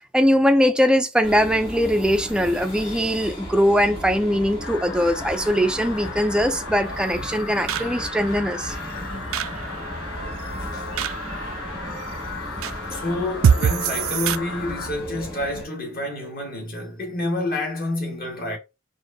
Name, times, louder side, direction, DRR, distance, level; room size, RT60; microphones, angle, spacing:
voice 1, 0.1-8.8 11.0-11.1, equal, 5° right, 0.3 m, -21 dB
sound 1, 1.2-15.6, equal, 25° left, 1.4 m, -36 dB
sound 2, 2.2-14.4, right 7 dB, 80° right, 0.3 m, -29 dB
sound 3, 4.6-14.9, left 4 dB, 80° left, 0.9 m, -36 dB
voice 2, 10.6-10.9 12.1-12.2 12.9-18.6, left 2 dB, 45° left, 1.4 m, -29 dB
4.5 x 2.6 x 2.6 m
head